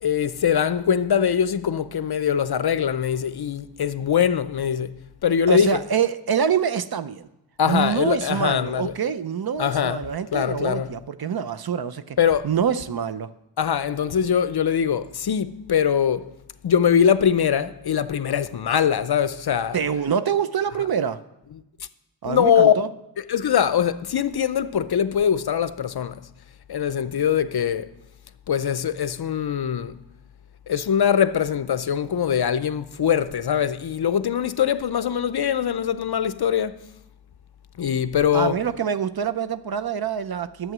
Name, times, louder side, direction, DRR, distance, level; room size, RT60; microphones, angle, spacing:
voice 1, 0.0-5.8 7.6-8.9 9.6-10.0 10.3-10.9 12.2-12.5 13.6-16.3 16.6-19.8 22.2-22.8 23.2-26.2 26.7-27.9 28.5-29.9 30.7-36.8 37.8-38.6, left 8 dB, 60° left, 0.6 m, -22 dB
voice 2, 5.5-7.3 7.7-12.2 12.4-13.3 19.7-21.2 22.2-22.9 38.3-40.7, right 7 dB, 55° right, 0.6 m, -25 dB
11.0 x 7.8 x 6.0 m
wide cardioid pair, 105°, 44 cm